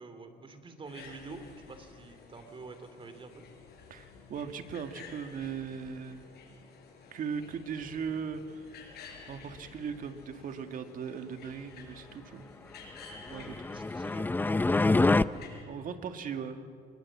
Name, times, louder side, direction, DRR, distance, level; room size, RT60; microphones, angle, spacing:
voice 1, 0.0-3.4 13.7-14.3, right 3 dB, 30° right, 8 dB, 2.9 m, -47 dB
sound 1, 0.8-15.6, left 5 dB, 70° left, 5.8 m, -52 dB
voice 2, 3.9-6.3 7.1-8.8 9.3-12.5 13.3-13.6 15.7-16.7, right 6 dB, 55° right, 7 dB, 2.0 m, -39 dB
sound 2, 13.3-15.2, left 3 dB, 10° left, 0.5 m, -26 dB
24.5 x 22.0 x 7.4 m, 2.3 s
cardioid pair, 110°, 17 cm